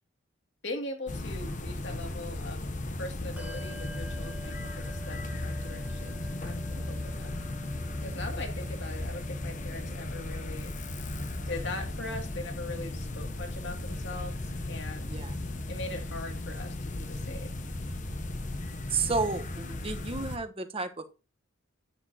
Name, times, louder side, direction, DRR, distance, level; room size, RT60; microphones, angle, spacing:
voice 1, 0.6-2.7 2.9-7.3 8.0-10.7 11.5-15.1 15.7-17.5, left 2 dB, 60° left, 3 dB, 2.6 m, -41 dB
sound 1, 1.1-20.4, left 2 dB, 40° left, 1.0 m, -36 dB
Bell, 3.4-13.3, right 1 dB, 5° right, 1.2 m, -51 dB
voice 2, 18.9-21.1, right 4 dB, 30° right, 8 dB, 1.1 m, -32 dB
10.0 x 9.9 x 2.9 m, 0.31 s
head